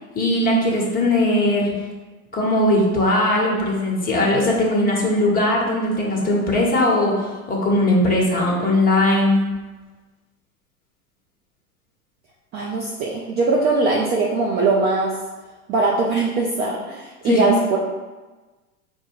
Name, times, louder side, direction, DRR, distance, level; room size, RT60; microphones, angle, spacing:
voice 1, 0.1-1.7 2.3-9.4 17.2-17.5, left 1 dB, 20° left, -3 dB, 1.1 m, -19 dB
voice 2, 12.5-15.1 15.7-17.8, right 3 dB, 25° right, -3 dB, 0.4 m, -21 dB
4.6 x 2.2 x 4.6 m, 1.2 s
hypercardioid pair, 105°, 44 cm